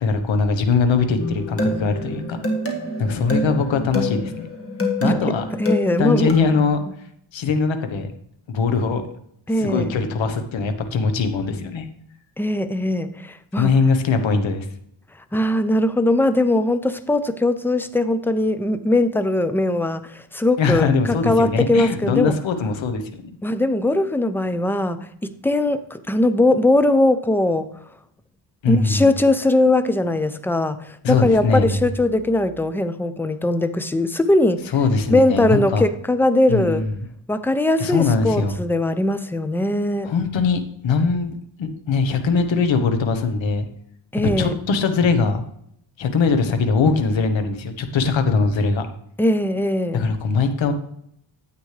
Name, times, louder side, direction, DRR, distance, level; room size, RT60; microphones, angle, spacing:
voice 1, 0.0-2.4 3.0-4.5 5.0-5.4 6.0-6.8 7.3-8.1 8.5-9.0 9.6-11.9 13.6-14.7 20.6-23.3 28.6-29.1 31.0-31.8 34.7-35.8 36.5-36.9 37.8-38.6 40.0-41.3 41.6-43.7 44.4-45.4 46.0-48.9 49.9-50.7, left 4 dB, 65° left, 8 dB, 1.2 m, -21 dB
sound 1, 1.2-6.7, left 1 dB, 25° left, 1.7 m, -26 dB
voice 2, 5.6-6.3 9.5-9.9 12.4-13.7 15.3-20.9 21.2-22.3 23.4-27.7 28.7-34.7 35.1-36.9 37.3-40.1 44.1-44.5 49.2-50.1, left 2 dB, 5° left, 12 dB, 0.4 m, -20 dB
9.8 x 8.3 x 3.3 m, 0.70 s
cardioid pair, 115°, 49 cm